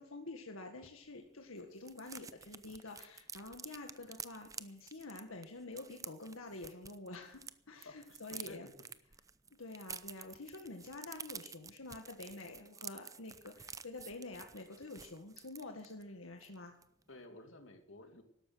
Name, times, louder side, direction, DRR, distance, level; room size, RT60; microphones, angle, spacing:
voice 1, 0.0-7.4 7.7-8.7 9.5-16.7, left 2 dB, 90° left, 4 dB, 1.8 m, -48 dB
sound 1, 0.8-0.9 1.2-1.3 1.5-7.5 7.8-16.0 16.4-16.6 16.8-17.1, right 6 dB, 15° right, 0.6 m, -50 dB
voice 2, 7.8-8.7 17.1-18.2, left 2 dB, 65° left, 6 dB, 2.5 m, -53 dB
13.0 x 12.0 x 7.9 m, 0.73 s
head